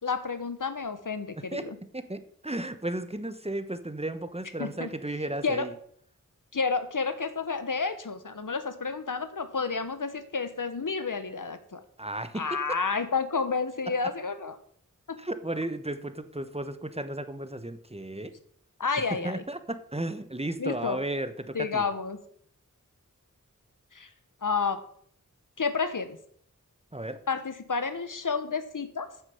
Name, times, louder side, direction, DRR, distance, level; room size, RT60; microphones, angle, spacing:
voice 1, 0.0-1.8 4.6-4.9 5.4-5.7 6.5-11.8 12.3-14.6 15.1-15.2 18.8-19.4 20.6-21.0 21.5-22.2 23.9-24.1 24.4-24.8 25.6-26.2 27.3-29.1, left 4 dB, 75° left, 10 dB, 1.2 m, -30 dB
voice 2, 1.9-5.7 12.0-12.4 15.2-18.3 19.2-21.8 26.9-27.2, right 1 dB, 20° right, 10 dB, 1.1 m, -34 dB
9.5 x 6.8 x 7.1 m, 0.64 s
wide cardioid pair, 45°, 32 cm